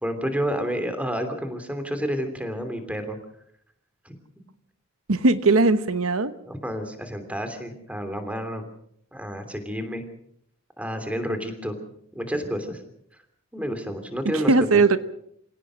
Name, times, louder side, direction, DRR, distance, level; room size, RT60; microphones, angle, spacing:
voice 1, 0.0-3.2 4.0-4.2 6.5-8.6 9.1-10.0 10.8-11.7 12.1-12.8 13.5-14.8, equal, 5° right, 8 dB, 2.9 m, -30 dB
voice 2, 5.1-6.3 14.3-15.0, right 3 dB, 80° right, 12 dB, 1.1 m, -19 dB
26.0 x 17.5 x 6.4 m, 0.70 s
head